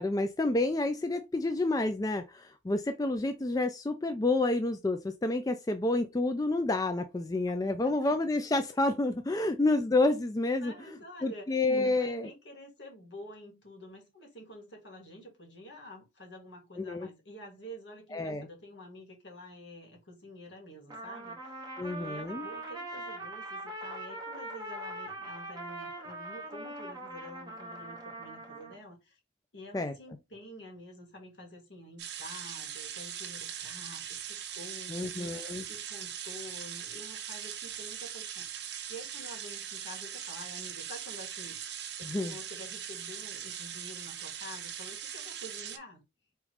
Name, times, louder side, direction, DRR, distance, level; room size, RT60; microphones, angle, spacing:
voice 1, 0.0-10.7 11.2-12.3 16.8-17.1 18.1-18.5 21.8-22.5 29.7-29.9 34.9-35.7 42.0-42.4, left 2 dB, 20° left, 0.3 m, -29 dB
voice 2, 10.6-29.2 29.5-41.6 42.0-46.0, equal, 65° left, 2.0 m, -49 dB
Trumpet, 20.9-28.8, right 2 dB, 20° right, 1.0 m, -42 dB
sound 1, 32.0-45.8, right 9 dB, 60° right, 0.8 m, -40 dB
4.9 x 3.0 x 3.2 m
head